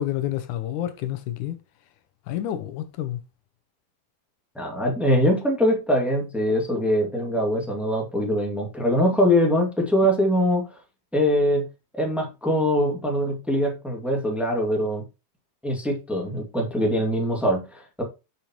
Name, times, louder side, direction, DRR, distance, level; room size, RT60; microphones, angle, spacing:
voice 1, 0.0-1.6 2.3-3.2, left 12 dB, 75° left, 2.1 m, -29 dB
voice 2, 4.5-10.7 11.1-11.7 11.9-15.0 15.6-18.0, equal, ahead, 1.4 m, -23 dB
7.5 x 6.8 x 3.0 m
omnidirectional pair, 3.8 m